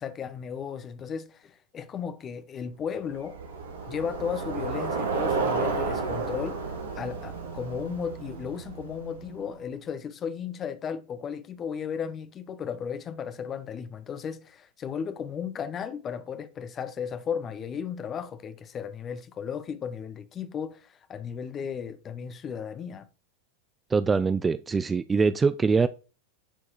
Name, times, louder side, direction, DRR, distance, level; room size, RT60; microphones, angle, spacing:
voice 1, 0.0-3.4 3.9-6.6 7.0-23.1, left 7 dB, 25° left, 1.0 m, -35 dB
Bicycle, 3.0-9.5, right 4 dB, 65° right, 1.7 m, -32 dB
voice 2, 23.9-25.9, right 4 dB, 15° right, 0.4 m, -23 dB
10.0 x 4.6 x 4.5 m
figure-of-eight pair, 90°, 0 cm